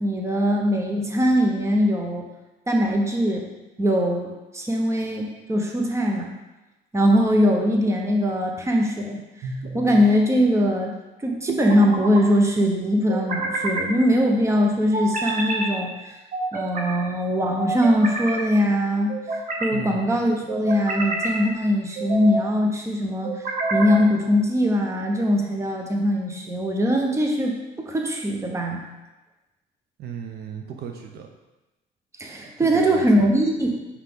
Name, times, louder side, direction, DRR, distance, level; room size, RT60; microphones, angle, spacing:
voice 1, 0.0-2.2 2.7-3.5 3.8-6.3 6.9-9.5 9.7-10.9 11.2-16.2 16.5-19.2 19.6-28.8 32.2-33.8, equal, 15° right, 1 dB, 1.0 m, -21 dB
sound 1, 9.4-10.1 11.5-12.2 13.1-13.9 14.9-15.7 16.3-16.9 17.6-18.4 19.1-19.7 20.5-21.4 22.0-22.5 23.2-24.0, right 2 dB, 55° right, 1.2 m, -28 dB
voice 2, 19.7-20.1 30.0-31.3 32.6-33.3, right 7 dB, 70° right, 3 dB, 0.7 m, -36 dB
5.7 x 4.8 x 3.8 m, 1.1 s
cardioid pair, 110°, 17 cm